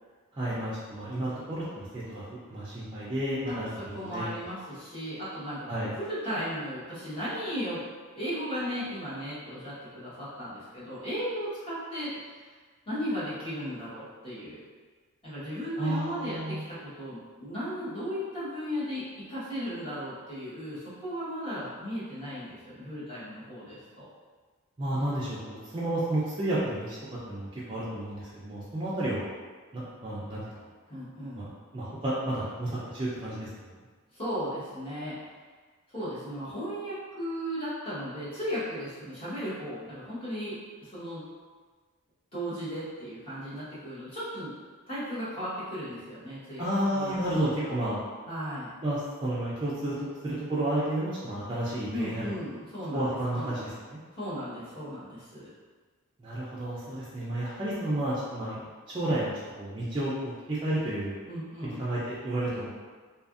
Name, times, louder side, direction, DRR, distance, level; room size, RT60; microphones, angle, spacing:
voice 1, 0.3-3.7 4.0-4.2 5.7-5.9 15.8-16.6 24.8-29.3 29.7-30.7 31.3-33.5 46.6-48.0 48.8-52.3 52.9-54.0 56.2-59.3 59.6-61.2 61.6-62.7, right 1 dB, 25° right, -10 dB, 0.4 m, -31 dB
voice 2, 3.9-7.8 8.1-12.5 12.9-14.6 15.2-19.0 19.3-24.1 30.9-31.5 34.1-35.3 35.9-41.2 42.3-44.5 44.9-46.6 46.9-47.2 47.6-47.7 48.3-48.7 51.9-53.6 54.1-55.5 61.3-61.8, equal, 25° left, -11 dB, 1.0 m, -36 dB
2.6 x 2.4 x 2.4 m, 1.4 s
head